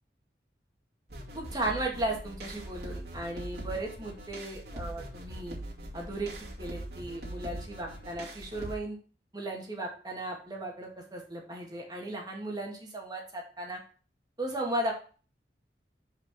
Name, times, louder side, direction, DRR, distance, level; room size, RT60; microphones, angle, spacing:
sound 1, 1.1-8.8, right 1 dB, 65° right, 2.5 m, -42 dB
voice 1, 1.3-5.6 5.9-6.3 6.6-9.0 9.3-13.8 14.4-14.9, right 1 dB, 20° right, 0 dB, 2.0 m, -36 dB
5.9 x 5.0 x 6.1 m, 0.39 s
head